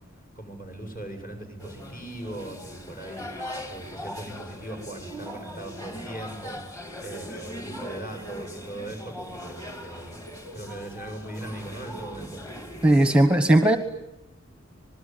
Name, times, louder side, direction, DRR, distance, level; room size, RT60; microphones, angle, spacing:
voice 1, 0.4-3.3 3.7-10.2 10.5-12.4, right 1 dB, 45° left, 3 dB, 7.5 m, -39 dB
sound 1, 1.6-13.2, equal, 15° left, 2.5 m, -40 dB
voice 2, 12.8-13.8, right 1 dB, 5° right, 8 dB, 1.2 m, -17 dB
26.5 x 21.0 x 9.2 m, 0.87 s
head